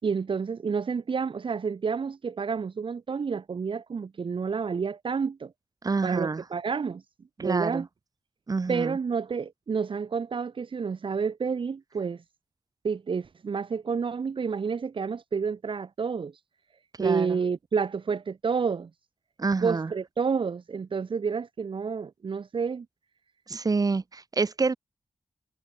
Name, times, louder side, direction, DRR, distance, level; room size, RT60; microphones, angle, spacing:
voice 1, 0.0-5.5 6.0-7.0 7.4-7.9 8.7-12.2 12.8-16.3 17.0-18.9 19.6-22.8, right 5 dB, 60° right, 3.2 m, -29 dB
voice 2, 5.8-6.4 7.4-7.8 8.5-9.0 17.0-17.4 19.4-19.9 23.5-24.8, right 4 dB, 40° right, 4.8 m, -27 dB
wide cardioid pair, 155°, 10 cm